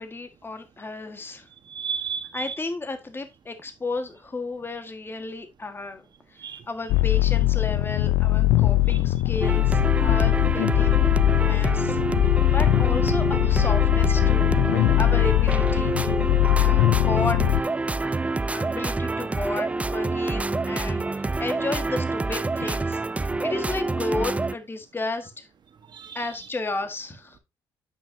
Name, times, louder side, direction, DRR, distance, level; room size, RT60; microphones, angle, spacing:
voice 1, 0.0-1.5 2.3-6.4 6.7-11.0 11.4-12.0 12.5-17.6 18.0-25.5 26.1-27.4, left 3 dB, 25° left, 1.5 m, -33 dB
voice 2, 1.7-2.5 6.4-6.6 8.9-9.0 18.6-18.7 25.9-26.2, right 7 dB, 50° right, 1.3 m, -33 dB
sound 1, 6.9-17.6, left 15 dB, 80° left, 0.5 m, -21 dB
sound 2, 9.4-24.6, right 3 dB, 15° right, 0.3 m, -27 dB
9.0 x 5.8 x 2.7 m
supercardioid pair, 65°, 10 cm